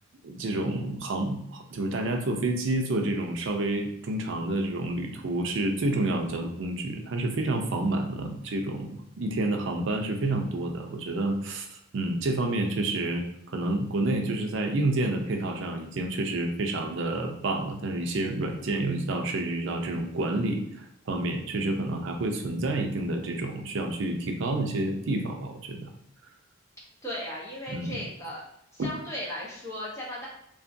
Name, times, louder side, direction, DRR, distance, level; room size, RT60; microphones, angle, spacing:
voice 1, 0.2-13.2 13.5-25.9 27.7-28.0 28.8-28.9, right 2 dB, 60° right, 4 dB, 0.4 m, -29 dB
voice 2, 27.0-28.4 28.7-30.3, left 1 dB, 15° left, -5 dB, 0.8 m, -36 dB
2.8 x 2.3 x 2.5 m, 0.75 s
head